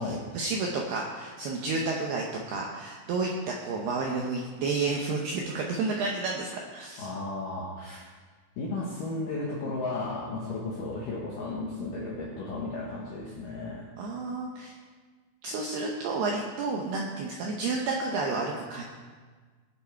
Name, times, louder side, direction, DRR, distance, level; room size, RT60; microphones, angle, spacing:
voice 1, 0.0-7.1 14.0-14.7 15.4-18.8, right 3 dB, 80° right, -1 dB, 2.3 m, -31 dB
voice 2, 7.0-8.0 8.6-13.9, left 3 dB, 70° left, -4 dB, 2.1 m, -34 dB
18.5 x 7.2 x 4.6 m, 1.5 s
omnidirectional pair, 5.9 m